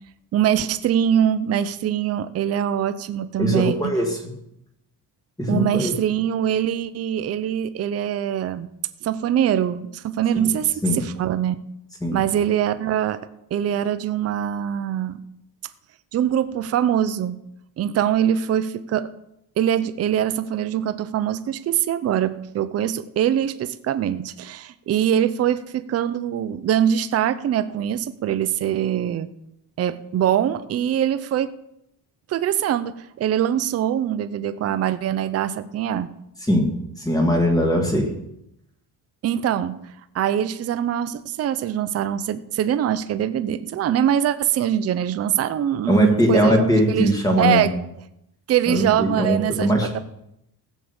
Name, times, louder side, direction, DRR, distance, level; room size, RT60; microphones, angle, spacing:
voice 1, 0.3-4.0 5.5-8.7 9.0-11.6 12.1-13.2 13.5-15.2 16.1-17.4 17.8-19.1 19.6-29.3 29.8-31.5 32.3-36.1 39.2-39.8 40.1-47.7 48.5-50.0, right 10 dB, 40° right, 12 dB, 0.6 m, -23 dB
voice 2, 3.4-4.2 5.4-5.9 10.4-10.5 10.8-11.0 12.0-12.2 36.5-36.7 37.0-38.1 45.9-47.6 48.7-50.0, equal, 10° left, 2 dB, 2.0 m, -20 dB
15.5 x 7.4 x 7.0 m, 0.82 s
cardioid pair, 180°, 39 cm